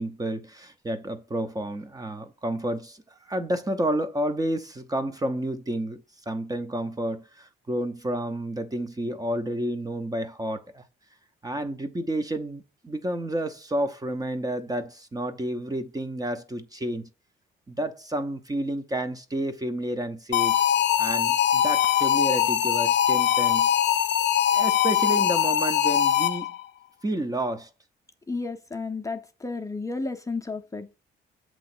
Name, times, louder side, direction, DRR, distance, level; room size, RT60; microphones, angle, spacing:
voice 1, 0.0-10.8 11.4-17.1 17.7-20.6 21.0-23.7 24.5-26.5 27.0-27.7, right 1 dB, 20° right, 0.7 m, -30 dB
sound 1, 20.3-26.6, left 10 dB, 65° left, 0.6 m, -22 dB
voice 2, 28.3-30.9, left 3 dB, 15° left, 0.7 m, -32 dB
7.6 x 3.1 x 6.0 m
cardioid pair, 90°, 20 cm